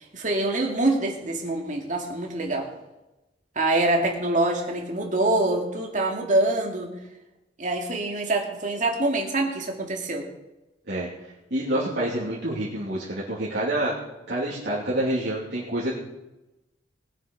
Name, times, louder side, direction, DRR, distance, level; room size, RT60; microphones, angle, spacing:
voice 1, 0.1-2.7 3.6-6.9 7.6-10.3, right 2 dB, 45° right, 1 dB, 2.3 m, -25 dB
voice 2, 11.5-13.9 14.3-15.9, right 1 dB, 65° right, -7 dB, 2.8 m, -27 dB
20.0 x 7.7 x 5.3 m, 0.99 s
head